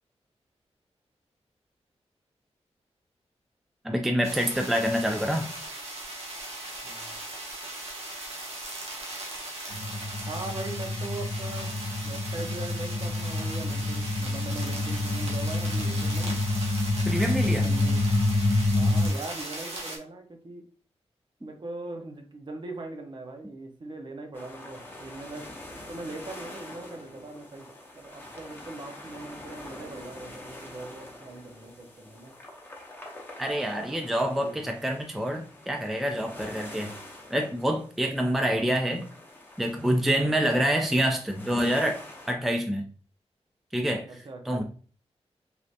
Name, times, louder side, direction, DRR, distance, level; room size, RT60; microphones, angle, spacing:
voice 1, 3.8-5.5 17.1-17.7 33.4-36.9 37.3-39.0 39.6-42.0 42.3-42.9 43.7-44.1 44.5-44.6, equal, ahead, 0.3 m, -26 dB
sound 1, 4.2-20.0, right 2 dB, 65° right, 0.9 m, -38 dB
voice 2, 6.8-7.2 10.3-11.8 12.0-16.4 17.5-18.1 18.7-20.7 21.4-25.5 25.9-27.7 27.9-32.3 34.2-34.7 40.1-40.6 44.0-44.6, right 2 dB, 45° right, 0.6 m, -40 dB
sound 2, 9.7-19.1, left 2 dB, 85° left, 0.6 m, -27 dB
sound 3, 24.3-42.3, left 1 dB, 15° left, 0.7 m, -46 dB
3.3 x 2.4 x 2.6 m
wide cardioid pair, 120°, 11 cm